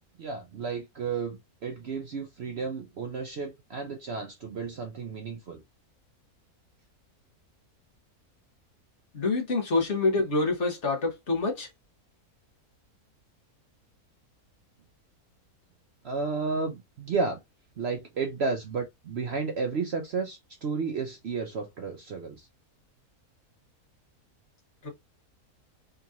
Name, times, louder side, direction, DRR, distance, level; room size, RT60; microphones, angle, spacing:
voice 1, 0.2-5.6 16.0-17.4 17.8-22.5, right 4 dB, 60° right, 0.7 m, -32 dB
voice 2, 9.1-11.7 24.8-24.9, left 3 dB, 50° left, 1.3 m, -26 dB
3.6 x 2.9 x 2.4 m
omnidirectional pair, 1.6 m